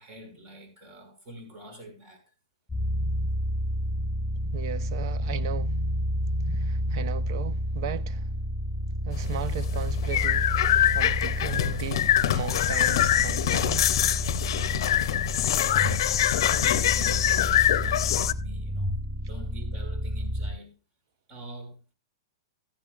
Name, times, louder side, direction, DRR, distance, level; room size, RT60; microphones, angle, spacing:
voice 1, 0.0-2.2 15.4-20.7 21.3-21.9, right 1 dB, 35° right, 5.9 m, -45 dB
sound 1, 2.7-20.5, equal, 5° right, 5.7 m, -30 dB
voice 2, 4.5-5.8 6.5-8.3 9.0-10.5 10.9-13.9, right 8 dB, 60° right, 0.7 m, -36 dB
sound 2, 9.1-18.3, left 12 dB, 65° left, 0.6 m, -24 dB
14.0 x 11.0 x 2.4 m
hypercardioid pair, 130°, 3 cm